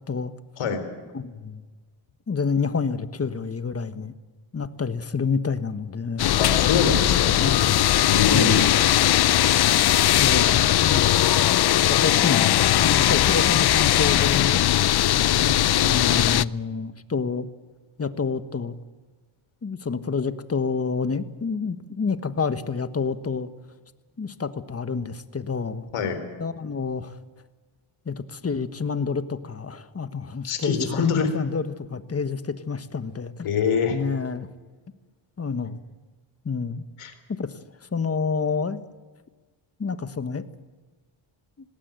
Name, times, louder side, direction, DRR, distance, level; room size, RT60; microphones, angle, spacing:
voice 1, 1.1-1.6 2.3-4.1 4.5-6.3 7.3-7.8 8.3-8.7 10.2-11.1 11.9-14.6 15.2-17.5 18.0-18.8 19.6-23.5 24.2-25.9 26.4-27.2 28.0-30.9 31.1-33.5 33.9-34.5 35.4-35.8 36.4-36.8 37.3-37.5 37.9-38.8 39.8-40.4, left 5 dB, 30° left, 12 dB, 1.4 m, -28 dB
sound 1, 6.2-16.4, left 13 dB, 50° left, 0.6 m, -19 dB
voice 2, 6.4-7.3 8.0-8.6 25.9-26.2 30.4-31.4 33.4-34.0 37.0-37.1, left 5 dB, 85° left, 8 dB, 4.1 m, -24 dB
20.0 x 17.5 x 9.1 m, 1.4 s
cardioid pair, 95°, 50 cm